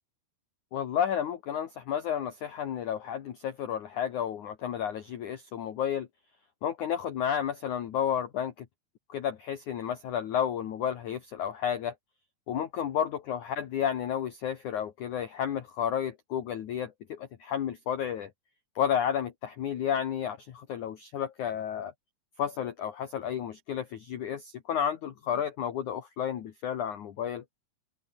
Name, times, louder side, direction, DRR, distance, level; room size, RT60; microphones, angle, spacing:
voice 1, 0.7-6.1 6.6-8.7 9.1-11.9 12.5-18.3 18.8-21.9 22.4-27.4, left 9 dB, 55° left, 2.5 m, -31 dB
omnidirectional pair, 5.0 m